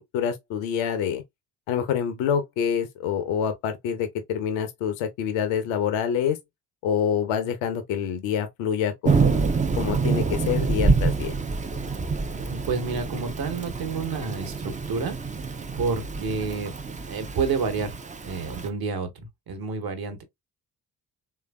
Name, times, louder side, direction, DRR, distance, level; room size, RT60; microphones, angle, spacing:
voice 1, 0.1-1.2 1.7-6.4 6.8-9.4 9.8-11.4, left 8 dB, 70° left, 0.8 m, -26 dB
Thunder / Rain, 9.0-18.7, right 4 dB, 15° right, 0.5 m, -27 dB
voice 2, 12.3-15.2 15.8-16.7 17.1-18.0 18.2-20.2, right 4 dB, 50° right, 1.2 m, -29 dB
3.3 x 2.8 x 2.2 m
hypercardioid pair, 40°, 48 cm